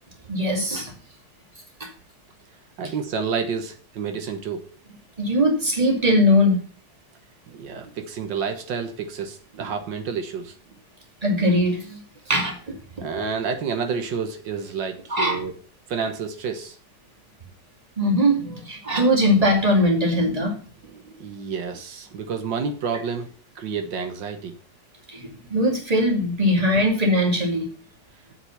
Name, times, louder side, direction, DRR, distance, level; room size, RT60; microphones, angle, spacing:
voice 1, 0.3-0.9 1.8-1.9 5.2-6.6 11.2-12.0 12.3-12.6 15.1-15.4 18.0-20.6 25.1-27.7, equal, 20° right, 1 dB, 2.4 m, -20 dB
voice 2, 2.8-4.7 7.5-10.5 13.0-15.5 15.9-16.8 20.9-23.3 23.5-24.6, right 6 dB, 85° right, 7 dB, 1.8 m, -29 dB
7.7 x 5.9 x 7.0 m, 0.42 s
omnidirectional pair, 1.9 m